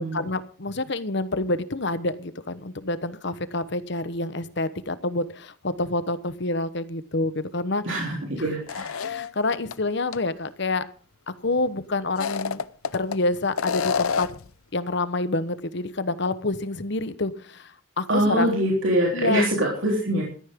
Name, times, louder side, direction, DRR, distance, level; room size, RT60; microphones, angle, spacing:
voice 1, 0.0-7.8 8.4-8.5 9.0-10.8 11.3-12.6 12.9-14.3 14.7-18.5 19.1-19.4, left 2 dB, 55° left, 13 dB, 1.1 m, -27 dB
voice 2, 7.9-9.0 18.1-20.2, right 1 dB, 65° right, -2 dB, 3.5 m, -24 dB
sound 1, 8.7-9.7 10.1-10.2 12.0-13.2 13.6-14.5, left 6 dB, 90° left, 0.7 m, -28 dB
16.5 x 13.5 x 3.7 m, 0.41 s
head